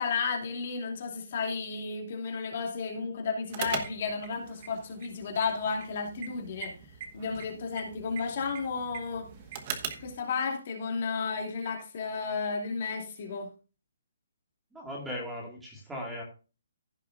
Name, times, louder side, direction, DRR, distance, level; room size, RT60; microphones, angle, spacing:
voice 1, 0.0-6.7 7.1-9.3 10.0-13.5, left 5 dB, 40° left, 2 dB, 2.8 m, -33 dB
sound 1, 3.5-10.2, right 7 dB, 25° right, 1.1 m, -41 dB
voice 2, 14.7-16.2, equal, 5° right, -2 dB, 2.1 m, -38 dB
16.0 x 6.6 x 2.5 m, 0.32 s
hypercardioid pair, 175°, 0 cm